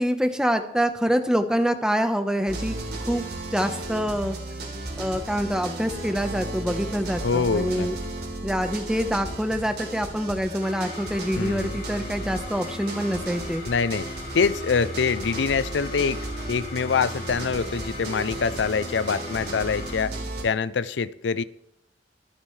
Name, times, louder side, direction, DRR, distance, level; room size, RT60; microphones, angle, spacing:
voice 1, 0.0-3.2 3.5-4.4 5.0-8.0 8.4-13.6, equal, 5° right, 7 dB, 1.0 m, -26 dB
sound 1, 2.5-20.4, right 2 dB, 65° right, 3.5 m, -35 dB
voice 2, 7.2-7.9 11.3-11.8 13.7-14.1 14.3-16.2 16.5-20.1 20.4-21.4, left 5 dB, 90° left, 16 dB, 0.5 m, -25 dB
sound 2, 10.6-20.0, left 2 dB, 60° left, 2.7 m, -39 dB
24.5 x 9.0 x 3.3 m, 0.75 s
head